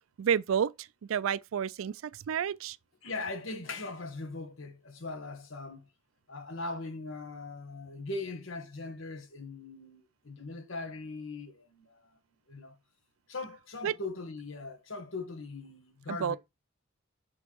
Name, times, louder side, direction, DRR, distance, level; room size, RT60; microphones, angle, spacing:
voice 1, 0.2-2.8 13.8-13.9 16.1-16.4, right 8 dB, 85° right, 0.4 m, -30 dB
voice 2, 3.0-5.9 6.3-12.2 12.5-12.8 13.3-16.4, left 3 dB, 75° left, 1.3 m, -40 dB
6.3 x 3.4 x 4.5 m
head